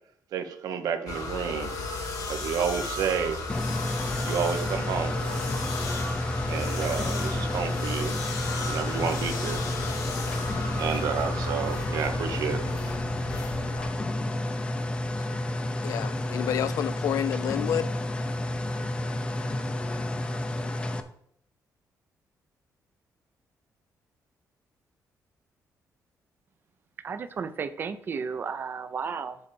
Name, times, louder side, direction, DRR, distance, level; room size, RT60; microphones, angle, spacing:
voice 1, 0.3-1.7 2.3-3.4 4.2-5.2 6.5-8.2 8.7-9.6 10.8-12.9, right 7 dB, 75° right, 1.1 m, -30 dB
sound 1, 1.1-13.9, left 2 dB, 80° left, 2.1 m, -34 dB
sound 2, 3.5-21.0, left 1 dB, 15° left, 0.6 m, -31 dB
voice 2, 15.8-17.9, left 10 dB, 60° left, 0.4 m, -29 dB
voice 3, 27.0-29.4, right 6 dB, 35° right, 0.6 m, -33 dB
7.9 x 4.1 x 7.0 m
cardioid pair, 180°, 6 cm